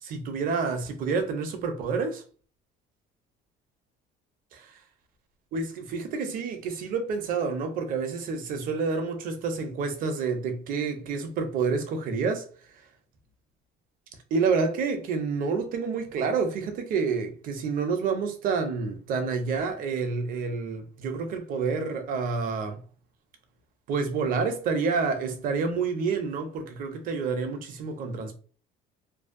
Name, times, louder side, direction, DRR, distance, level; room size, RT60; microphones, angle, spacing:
voice 1, 0.0-2.2 4.5-4.8 5.5-12.5 12.7-12.9 14.3-22.8 23.9-28.3, right 5 dB, 50° right, 0.6 m, -28 dB
2.6 x 2.1 x 2.5 m
cardioid pair, 145°, 18 cm